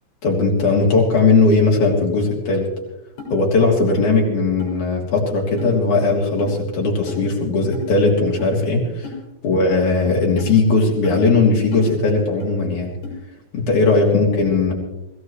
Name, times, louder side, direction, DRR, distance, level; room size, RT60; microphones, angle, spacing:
voice 1, 0.2-2.7 3.3-9.1 9.4-12.9 13.5-14.7, left 3 dB, 50° left, -1 dB, 4.1 m, -18 dB
sound 1, 3.2-3.3 3.9-4.0 4.6-4.8 5.6-5.7 6.4-6.5 7.1-7.2 7.7-7.9 8.4-8.5 9.0-9.2 9.7-9.8 10.4-10.5 11.0-11.2 11.7-11.9 12.4-12.5 13.0-13.2, left 5 dB, 70° left, 7.3 m, -33 dB
23.5 x 15.5 x 3.2 m, 0.92 s
omnidirectional pair, 4.7 m